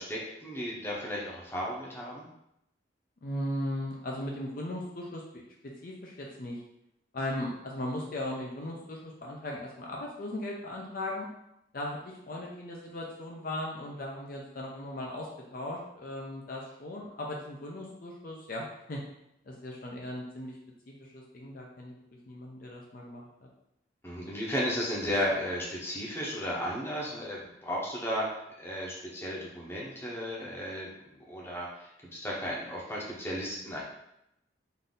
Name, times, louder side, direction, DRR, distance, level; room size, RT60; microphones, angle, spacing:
voice 1, 0.0-2.3 24.0-28.3 28.6-30.9 31.3-33.8, equal, 15° left, -4 dB, 0.8 m, -34 dB
voice 2, 3.2-5.2 5.6-6.6 7.1-11.3 11.7-19.0 19.4-20.6 20.9-22.0 22.3-23.5, left 1 dB, 50° left, -2 dB, 0.6 m, -37 dB
3.8 x 2.7 x 3.8 m, 0.81 s
head